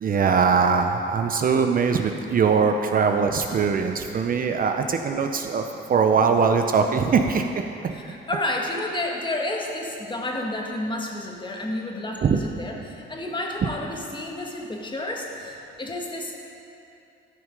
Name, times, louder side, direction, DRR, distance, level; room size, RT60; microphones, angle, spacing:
voice 1, 0.0-7.9 12.2-12.4, right 5 dB, 45° right, 5 dB, 0.6 m, -21 dB
voice 2, 7.9-16.4, left 1 dB, 25° left, 0 dB, 1.6 m, -30 dB
13.0 x 6.3 x 5.2 m, 2.7 s
cardioid pair, 90°, 20 cm